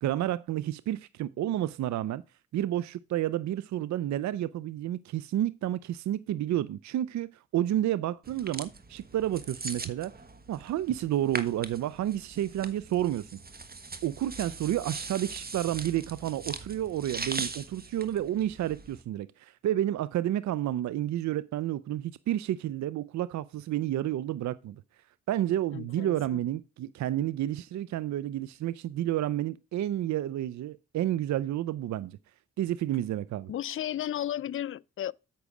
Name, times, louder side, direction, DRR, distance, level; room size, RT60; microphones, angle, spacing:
voice 1, 0.0-2.2 2.5-10.1 10.5-13.3 14.0-24.8 25.3-32.2 32.6-33.5, right 12 dB, 70° right, 0.5 m, -30 dB
sound 1, 8.3-19.0, right 3 dB, 30° right, 1.4 m, -41 dB
voice 2, 25.7-26.4 33.5-35.1, left 11 dB, 45° left, 0.4 m, -34 dB
8.4 x 6.1 x 4.9 m
supercardioid pair, 55°, 29 cm